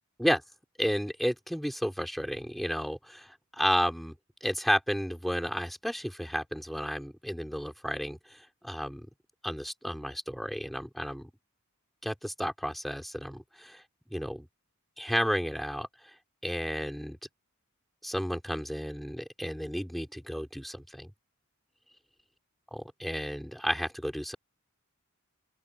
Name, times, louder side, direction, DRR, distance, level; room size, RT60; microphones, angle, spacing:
voice 1, 0.8-4.1 4.4-9.1 9.4-11.3 12.0-13.8 14.1-14.5 15.0-15.9 16.4-17.2 18.0-21.1 23.0-24.4, equal, ahead, 3.8 m, -32 dB
open air
head